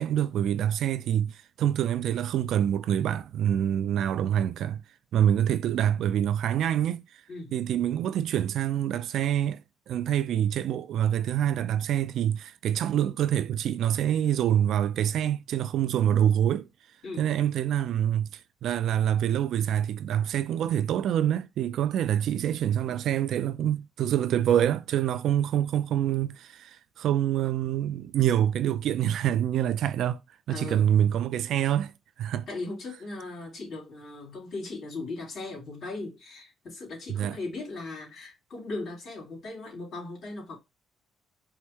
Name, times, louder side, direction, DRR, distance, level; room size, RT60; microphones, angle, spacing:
voice 1, 0.0-4.8 5.1-7.0 7.5-9.6 9.9-16.7 17.2-30.2 30.5-31.9 32.2-32.5 37.1-37.4, right 10 dB, 75° right, 0.3 m, -26 dB
voice 2, 30.5-31.0 32.5-40.6, left 3 dB, 60° left, 2.8 m, -38 dB
4.8 x 2.1 x 4.3 m
cardioid pair, 90°, 0 cm